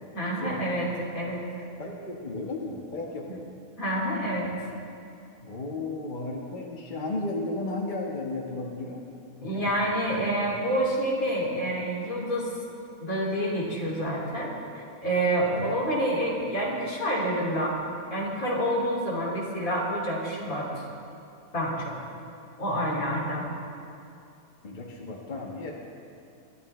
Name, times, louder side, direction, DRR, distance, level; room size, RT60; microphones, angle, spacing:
voice 1, 0.1-0.9 1.1-1.6 3.8-4.5 9.4-12.5 13.0-17.8 18.1-20.7 21.5-21.9 22.6-23.5, right 1 dB, 80° left, -3 dB, 3.2 m, -28 dB
voice 2, 1.8-3.5 5.4-9.0 9.4-9.9 15.4-15.7 24.6-25.7, left 2 dB, 35° left, -1 dB, 1.5 m, -34 dB
23.5 x 12.5 x 3.2 m, 2.6 s
omnidirectional pair, 1.5 m